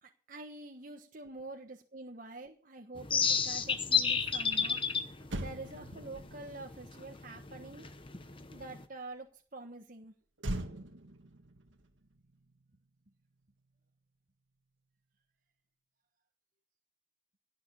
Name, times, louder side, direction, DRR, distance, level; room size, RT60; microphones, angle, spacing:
voice 1, 0.0-4.8 5.3-7.9 8.5-10.1, right 2 dB, 45° right, 3 dB, 1.3 m, -47 dB
sound 1, 3.0-8.8, left 6 dB, 25° left, 0.9 m, -32 dB
Motor vehicle (road), 5.2-8.7 10.4-13.0 13.2-13.5, right 1 dB, 75° right, 1.7 m, -43 dB
17.0 x 7.0 x 7.0 m, 0.43 s
head